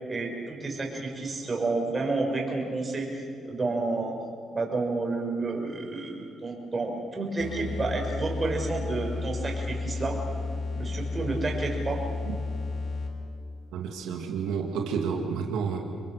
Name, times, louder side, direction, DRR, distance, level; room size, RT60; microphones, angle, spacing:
voice 1, 0.1-4.1 4.5-10.2 10.7-12.0, right 3 dB, 30° right, 1 dB, 5.7 m, -30 dB
sound 1, 7.4-13.3, left 3 dB, 50° left, 3.5 m, -33 dB
voice 2, 13.7-15.8, right 6 dB, 90° right, 1 dB, 2.1 m, -30 dB
27.5 x 22.0 x 6.6 m, 2.5 s
cardioid pair, 90°, 0 cm